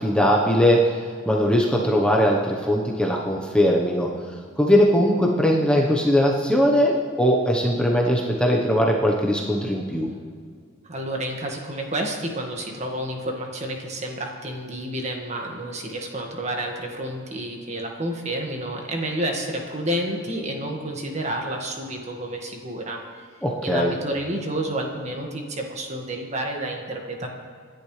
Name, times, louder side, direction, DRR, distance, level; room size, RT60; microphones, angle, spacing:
voice 1, 0.0-4.1 4.6-10.1 23.4-23.9, equal, 5° left, -2 dB, 1.1 m, -20 dB
voice 2, 10.9-23.2 23.6-27.3, right 1 dB, 35° right, 1 dB, 1.8 m, -30 dB
26.5 x 11.0 x 3.3 m, 2.1 s
head